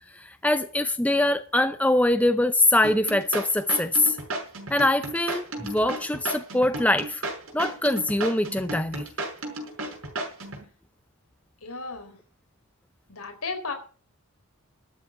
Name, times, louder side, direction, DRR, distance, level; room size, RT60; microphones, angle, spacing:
voice 1, 0.1-4.2 4.7-7.2 7.5-9.1, left 1 dB, 5° left, 0.6 m, -23 dB
sound 1, 2.8-10.6, right 2 dB, 70° right, 5.8 m, -33 dB
voice 2, 11.6-12.2 13.1-13.7, left 4 dB, 80° left, 4.1 m, -34 dB
13.0 x 7.7 x 8.3 m
head